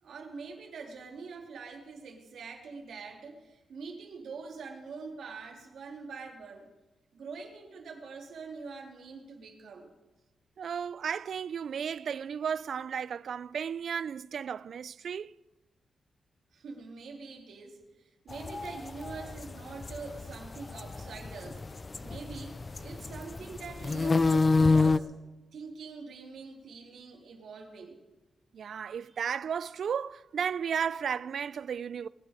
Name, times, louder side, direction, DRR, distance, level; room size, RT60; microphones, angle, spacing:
voice 1, 0.0-6.7 7.1-9.9 16.5-21.6 22.0-25.1 25.5-28.0 29.0-29.2, right 4 dB, 80° right, 2.8 m, -44 dB
voice 2, 10.6-15.3 28.5-32.1, right 7 dB, 65° right, 0.4 m, -34 dB
sound 1, 18.3-25.0, left 3 dB, 25° left, 0.4 m, -28 dB
21.0 x 9.8 x 5.0 m
wide cardioid pair, 135°, 0 cm